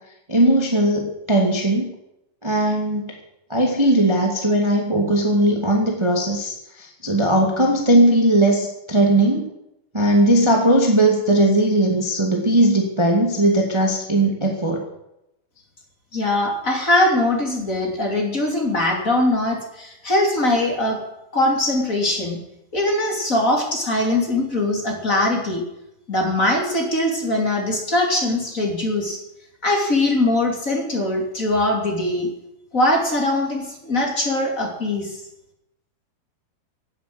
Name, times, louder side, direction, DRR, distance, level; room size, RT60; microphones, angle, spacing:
voice 1, 0.3-1.9 2.4-3.1 3.5-9.5 9.9-14.8, right 1 dB, 15° right, 0 dB, 0.8 m, -18 dB
voice 2, 16.1-21.0 21.3-22.4 22.7-25.6 26.1-29.2 29.6-32.3 32.7-35.2, left 1 dB, 25° left, 1 dB, 2.6 m, -21 dB
17.0 x 9.3 x 7.8 m, 0.86 s
omnidirectional pair, 4.7 m